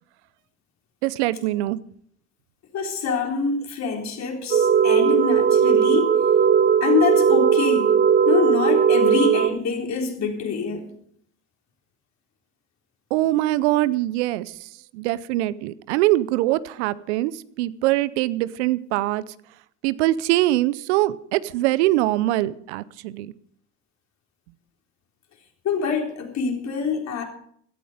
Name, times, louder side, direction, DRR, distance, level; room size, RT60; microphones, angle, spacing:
voice 1, 1.0-1.8 13.1-14.5 14.9-17.3 17.6-19.2 19.8-23.3, right 16 dB, 75° right, 18 dB, 0.7 m, -23 dB
voice 2, 2.7-6.2 6.8-8.0 8.3-10.9 25.6-27.2, left 5 dB, 50° left, 2 dB, 3.9 m, -25 dB
sound 1, 4.5-9.5, right 7 dB, 30° right, 1.1 m, -18 dB
16.5 x 12.5 x 5.1 m, 0.63 s
hypercardioid pair, 65°, 34 cm